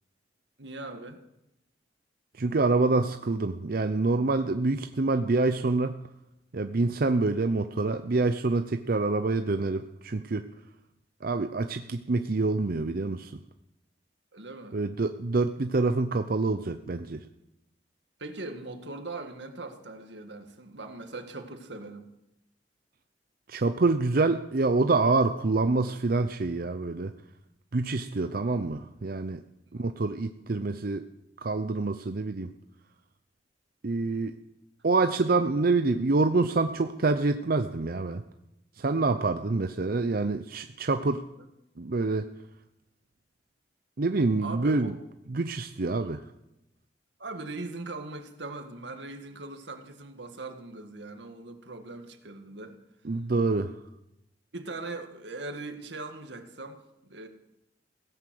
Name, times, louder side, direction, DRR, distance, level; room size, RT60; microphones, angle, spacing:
voice 1, 0.6-1.2 14.3-14.9 18.2-22.1 29.7-29.8 34.0-34.3 41.4-41.5 44.4-45.0 46.0-46.1 47.2-52.8 54.5-57.3, right 2 dB, 85° right, 6 dB, 1.9 m, -40 dB
voice 2, 2.4-6.0 6.5-10.5 11.2-13.3 14.7-17.2 23.5-27.1 27.7-29.4 29.7-31.0 31.4-32.5 33.8-34.3 34.8-38.2 38.8-41.2 41.8-42.2 44.0-44.9 45.3-46.2 53.1-53.7, right 3 dB, 55° right, 8 dB, 0.6 m, -26 dB
17.0 x 11.0 x 7.7 m, 0.88 s
head